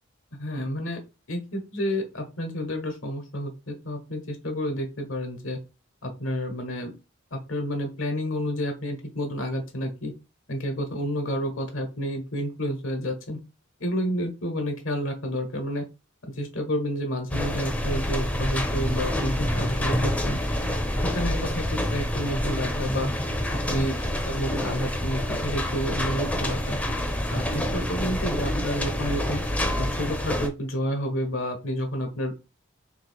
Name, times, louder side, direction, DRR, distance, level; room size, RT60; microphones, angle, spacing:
voice 1, 0.3-1.0 1.3-5.6 6.0-6.9 7.3-10.1 10.5-13.4 13.8-15.8 16.4-20.4 21.1-23.1 23.5-23.9 24.2-26.8 27.3-29.4 29.8-32.3, equal, 75° left, 5 dB, 1.0 m, -30 dB
sound 1, 17.3-30.5, left 1 dB, 5° left, 0.5 m, -27 dB
3.2 x 2.9 x 4.3 m, 0.29 s
head